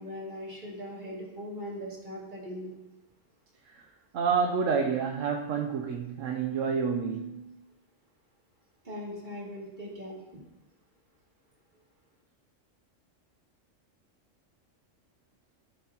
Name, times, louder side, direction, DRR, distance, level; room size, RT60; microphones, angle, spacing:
voice 1, 0.0-2.8 8.8-10.4, equal, 40° right, 2.9 m, -40 dB
voice 2, 3.6-7.5, right 6 dB, 85° right, 1.1 m, -29 dB
15.0 x 7.3 x 2.9 m
omnidirectional pair, 1.3 m